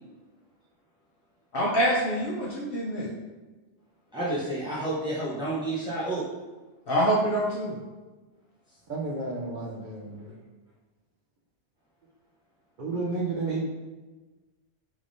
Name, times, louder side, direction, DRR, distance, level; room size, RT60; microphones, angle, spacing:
voice 1, 1.5-3.1 6.9-7.7, right 1 dB, 60° left, -5 dB, 0.7 m, -25 dB
voice 2, 4.1-6.2, right 2 dB, 10° right, -9 dB, 0.3 m, -30 dB
voice 3, 8.9-10.3 12.8-13.7, right 3 dB, 55° right, -3 dB, 0.6 m, -31 dB
3.6 x 3.3 x 2.5 m, 1.2 s
omnidirectional pair, 1.3 m